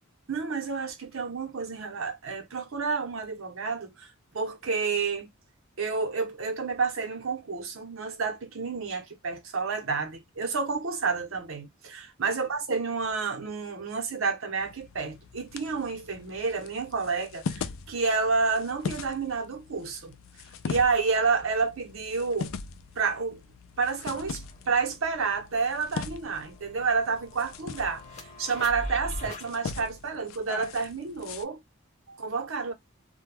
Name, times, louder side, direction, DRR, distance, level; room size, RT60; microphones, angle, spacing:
voice 1, 0.3-5.3 5.8-20.1 20.7-22.5 23.0-23.4 23.8-31.6 32.1-32.7, right 4 dB, 70° right, 0.8 m, -30 dB
sound 1, 14.6-31.4, left 5 dB, 70° left, 0.4 m, -41 dB
sound 2, 24.5-29.5, left 1 dB, 30° left, 0.9 m, -42 dB
2.2 x 2.2 x 3.2 m
head